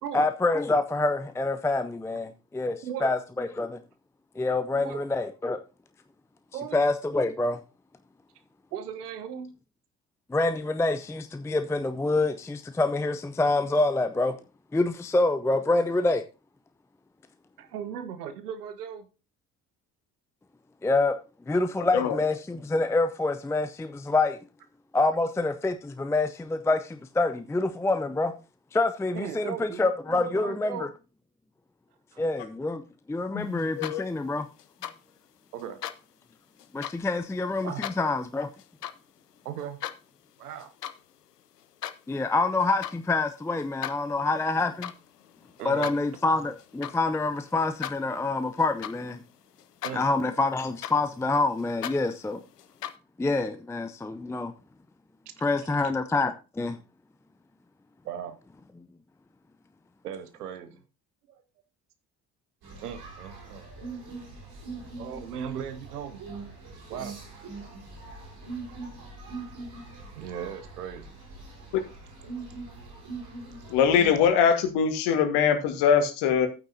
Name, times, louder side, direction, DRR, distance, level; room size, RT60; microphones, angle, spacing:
voice 1, 0.1-3.8 4.4-5.6 6.7-7.6 10.3-14.4 14.7-16.2 20.8-21.1 21.5-24.4 24.9-28.3 28.7-30.9 32.2-32.8 33.1-34.5 36.7-38.5 42.1-44.9 45.6-49.2 49.9-52.4 53.2-54.5 55.4-56.8, left 2 dB, 5° left, 0.5 m, -26 dB
voice 2, 2.8-3.2 4.7-5.0 6.5-6.8 8.7-9.5 17.6-19.1 29.1-30.9 32.1-32.2 35.5-35.8 37.6-37.8 39.4-39.8 40.4-40.7 45.6-45.9 49.8-50.3 55.4-55.5 55.8-55.9 58.0-58.4 60.0-60.8 61.3-61.4 62.8-63.7 64.9-66.2 66.9-67.2 70.2-71.1, right 8 dB, 75° right, 1.1 m, -37 dB
voice 3, 33.3-34.0 71.7-71.8 73.7-76.5, left 7 dB, 55° left, 1.7 m, -23 dB
sound 1, 33.6-34.2 34.6-35.0 35.6-36.0 36.6-37.0 37.6-38.0 38.6-39.0 39.4-40.0 40.5-41.0 41.3-42.0 42.6-43.0 43.6-49.3 49.6-50.2 50.6-52.9, left 11 dB, 80° left, 0.6 m, -39 dB
sound 2, 62.6-74.3, right 3 dB, 50° right, 4.0 m, -42 dB
11.5 x 9.0 x 2.7 m
figure-of-eight pair, 55°, 47 cm